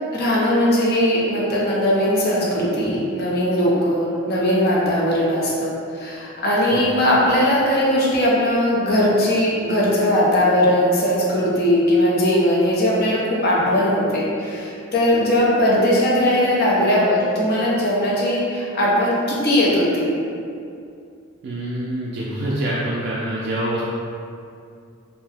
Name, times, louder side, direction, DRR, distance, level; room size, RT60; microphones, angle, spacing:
voice 1, 0.1-20.1, left 1 dB, 45° left, -6 dB, 0.6 m, -19 dB
voice 2, 21.4-23.8, right 1 dB, 50° right, -6 dB, 0.3 m, -25 dB
2.7 x 2.1 x 3.3 m, 2.5 s
head